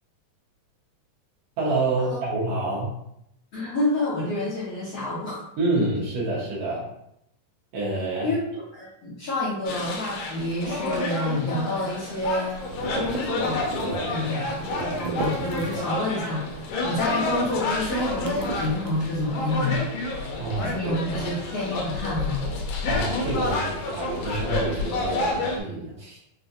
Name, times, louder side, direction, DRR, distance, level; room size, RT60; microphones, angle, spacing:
voice 1, 1.6-2.9 5.6-6.9 7.7-8.3 13.8-14.2 14.7-15.0 15.7-15.9 20.4-21.3 22.9-26.2, right 2 dB, 65° right, -7 dB, 1.6 m, -28 dB
voice 2, 3.5-5.4 8.2-8.4 8.7-12.6 12.9-13.7 14.1-19.8 20.6-22.4, left 1 dB, 75° left, -9 dB, 1.4 m, -28 dB
sound 1, 9.7-25.6, left 2 dB, 90° left, 2.4 m, -30 dB
sound 2, 12.2-16.1 16.4-19.5, right 3 dB, 85° right, 1.7 m, -36 dB
5.5 x 2.4 x 2.7 m, 0.77 s
omnidirectional pair, 4.0 m